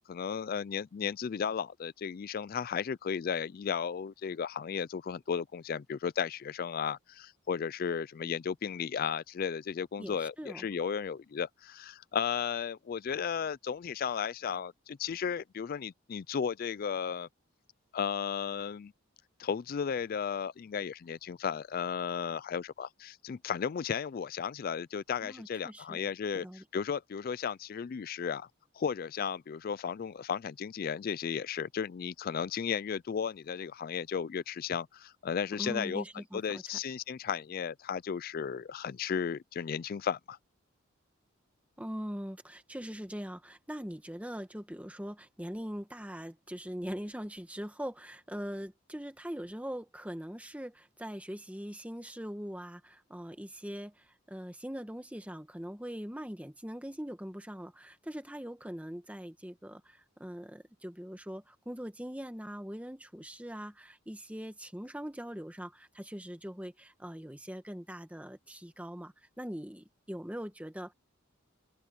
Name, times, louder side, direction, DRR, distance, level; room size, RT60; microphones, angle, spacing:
voice 1, 0.0-17.3 17.9-18.9 19.4-26.5 26.7-28.5 28.7-36.0 36.3-40.4, left 7 dB, 45° left, 0.3 m, -34 dB
voice 2, 10.0-10.7 25.2-26.0 26.3-26.6 35.6-36.6 41.8-70.9, equal, 5° right, 1.4 m, -42 dB
head